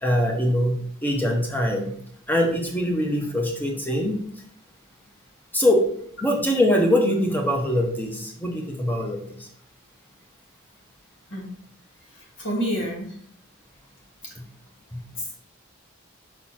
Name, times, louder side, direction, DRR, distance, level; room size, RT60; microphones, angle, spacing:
voice 1, 0.0-1.9 2.3-4.2 5.5-5.8 6.2-9.5 14.9-15.0, left 1 dB, 10° left, 1 dB, 1.0 m, -23 dB
voice 2, 12.1-13.2 15.1-15.4, equal, 60° left, -3 dB, 2.1 m, -29 dB
5.8 x 4.1 x 4.2 m, 0.64 s
head